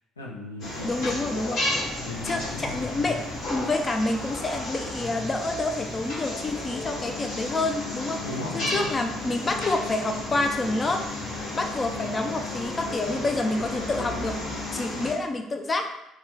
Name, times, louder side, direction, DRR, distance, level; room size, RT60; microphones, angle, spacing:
voice 1, 0.2-1.7 2.0-2.8 8.2-8.9 11.9-12.1, left 2 dB, 85° left, -1 dB, 0.5 m, -37 dB
sound 1, 0.6-15.1, left 2 dB, 60° left, 1.1 m, -33 dB
voice 2, 0.8-1.6 2.2-8.2 8.5-11.0 11.5-14.4 14.7-15.9, left 2 dB, 30° left, 5 dB, 0.4 m, -28 dB
4.3 x 2.2 x 3.9 m, 0.89 s
figure-of-eight pair, 50°, 0 cm